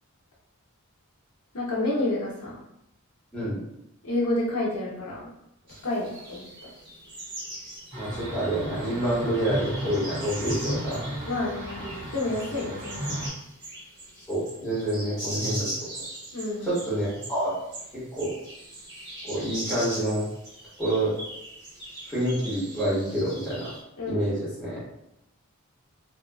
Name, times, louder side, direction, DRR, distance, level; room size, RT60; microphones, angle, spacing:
voice 1, 1.5-2.6 4.0-5.3 5.8-6.5 11.3-11.9 12.1-13.2 16.3-16.8 24.0-24.3, left 2 dB, 85° left, -6 dB, 0.9 m, -29 dB
sound 1, 5.7-23.8, right 1 dB, 50° right, 1.2 m, -40 dB
sound 2, 7.9-13.3, right 1 dB, 85° right, 1.4 m, -34 dB
voice 2, 8.0-11.0 14.3-15.7 16.6-17.5 18.1-18.3 19.2-20.2 20.8-21.1 22.1-23.7 24.1-24.8, right 1 dB, 5° left, -11 dB, 1.1 m, -27 dB
2.8 x 2.3 x 2.3 m, 0.83 s
head